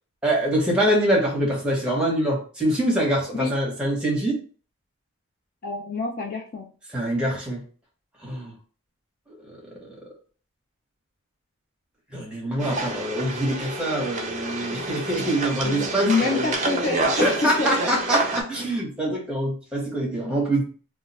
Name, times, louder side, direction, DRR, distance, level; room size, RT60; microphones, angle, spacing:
voice 1, 0.2-4.4 6.9-7.6 8.2-8.5 12.1-16.5 17.2-20.6, right 1 dB, 5° right, -3 dB, 0.8 m, -24 dB
voice 2, 5.6-6.7 15.6-17.1 17.6-17.7, left 4 dB, 40° left, 0 dB, 0.4 m, -27 dB
sound 1, 12.6-18.4, right 2 dB, 35° right, 0.4 m, -28 dB
2.3 x 2.2 x 3.9 m, 0.40 s
head